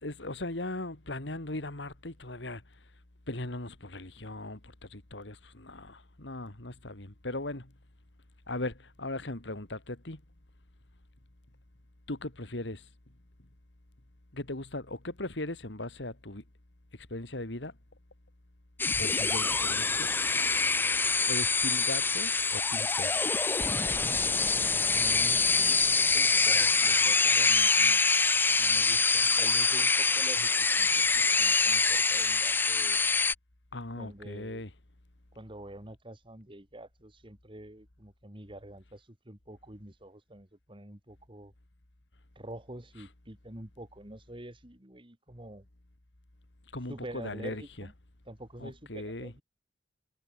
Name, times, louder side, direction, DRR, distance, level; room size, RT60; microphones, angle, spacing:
voice 1, 0.0-2.6 3.3-7.7 8.5-10.2 12.1-12.9 14.3-16.4 17.1-17.7 19.0-20.1 21.3-23.3 33.7-34.7 46.7-47.9 48.6-49.3, left 2 dB, 70° left, 2.4 m, -38 dB
sound 1, 18.8-33.3, left 4 dB, 10° left, 0.4 m, -25 dB
voice 2, 24.9-28.1 28.6-33.0 34.0-34.6 35.3-41.5 42.4-45.6 46.9-47.9 48.3-49.4, right 1 dB, 30° right, 2.7 m, -47 dB
head